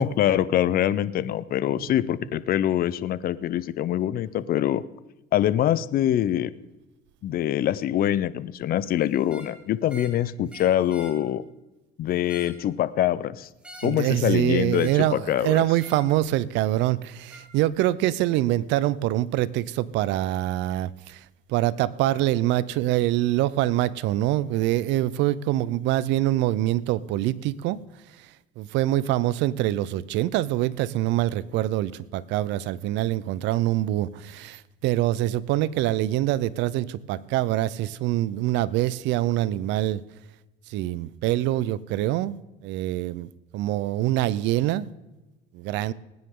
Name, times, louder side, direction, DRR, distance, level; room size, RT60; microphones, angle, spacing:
voice 1, 0.0-4.8 5.3-6.5 7.2-11.4 12.0-13.5 13.8-15.6, left 11 dB, 55° left, 17 dB, 0.7 m, -24 dB
sound 1, 9.2-9.5 9.9-10.2 10.5-11.2 12.1-12.6 13.6-14.0 14.7-15.1 15.7-16.1 17.3-17.5, right 1 dB, 5° right, 3.2 m, -46 dB
voice 2, 13.8-21.2 21.5-27.8 28.6-40.0 40.7-42.4 42.6-44.9 45.5-45.9, right 14 dB, 75° right, 19 dB, 0.7 m, -25 dB
20.0 x 9.6 x 3.8 m, 1.0 s
cardioid pair, 105°, 19 cm